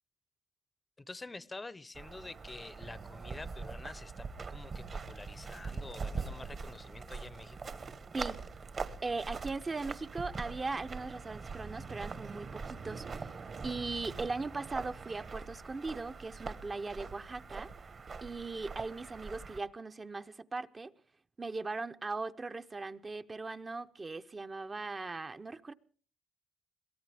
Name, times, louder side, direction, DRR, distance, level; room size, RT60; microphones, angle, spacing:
voice 1, 1.0-7.7, left 3 dB, 20° left, 0.7 m, -48 dB
sound 1, 1.9-19.6, right 4 dB, 45° right, 1.2 m, -43 dB
voice 2, 9.0-13.3 13.6-17.7 18.2-20.9 21.4-25.7, right 3 dB, 30° right, 0.7 m, -39 dB
23.0 x 17.0 x 3.4 m
cardioid pair, 90°, 0 cm